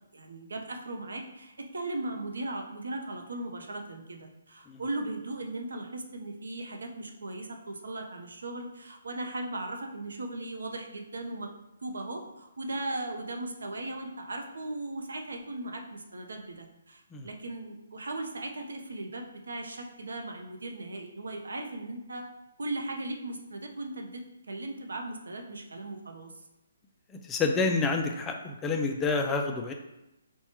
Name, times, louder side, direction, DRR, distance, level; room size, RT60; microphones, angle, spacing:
voice 1, 0.1-11.5 11.8-22.3 22.6-26.3, right 2 dB, 85° right, 3 dB, 0.6 m, -37 dB
voice 2, 27.2-29.7, left 4 dB, 10° left, 3 dB, 0.3 m, -28 dB
4.3 x 2.2 x 2.9 m, 0.92 s
hypercardioid pair, 160°, 0 cm